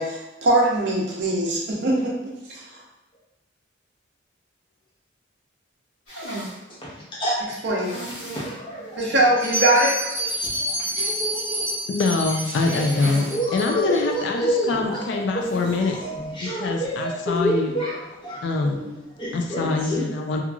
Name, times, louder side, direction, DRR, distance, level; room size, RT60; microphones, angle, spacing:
voice 1, 0.0-2.1 2.5-2.6 7.6-8.0 9.0-10.0, right 1 dB, 55° right, -3 dB, 0.6 m, -21 dB
sound 1, 6.1-6.6 7.8-8.6 8.9-9.0 9.4-9.5 12.2-13.4 13.7-13.8 15.4-15.8, right 1 dB, 80° left, 1.1 m, -37 dB
voice 2, 8.2-9.2 9.4-9.6 10.2-11.8 12.7-20.0, equal, 25° left, -6 dB, 0.7 m, -29 dB
Bell, 9.4-14.0, equal, 10° right, 0.5 m, -28 dB
voice 3, 11.9-13.3 13.5-16.0 16.4-17.8 18.4-18.8 19.3-20.4, left 3 dB, 60° left, 2 dB, 0.3 m, -24 dB
2.9 x 2.4 x 2.3 m, 0.98 s
head